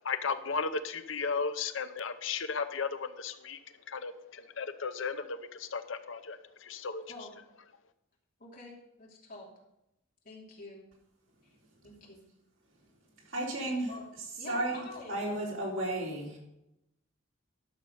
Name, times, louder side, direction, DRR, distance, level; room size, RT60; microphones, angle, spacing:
voice 1, 0.0-3.6 3.9-7.0, left 5 dB, 70° left, 11 dB, 0.7 m, -35 dB
voice 2, 8.4-9.5 10.2-10.8 11.4-11.5 11.8-12.2 13.9-14.1 14.4-15.2, left 2 dB, 45° left, -2 dB, 2.9 m, -47 dB
voice 3, 13.3-13.9 14.5-16.4, right 1 dB, 75° right, -3 dB, 3.8 m, -33 dB
12.5 x 6.4 x 5.6 m, 0.84 s
head